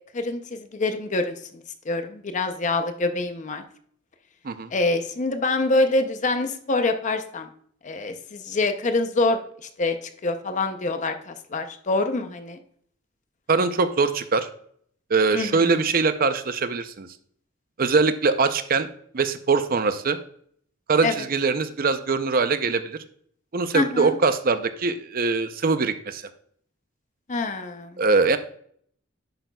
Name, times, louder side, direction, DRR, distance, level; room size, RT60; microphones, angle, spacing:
voice 1, 0.1-3.6 4.7-7.5 7.8-12.6 15.3-15.8 21.0-21.1 23.7-24.2 27.3-28.0, left 2 dB, 40° left, 7 dB, 0.6 m, -26 dB
voice 2, 13.5-14.5 15.1-17.1 17.8-18.9 19.1-20.2 20.9-23.0 23.5-26.2 28.0-28.4, right 4 dB, 45° right, 10 dB, 0.6 m, -22 dB
10.5 x 7.9 x 2.3 m, 0.63 s
head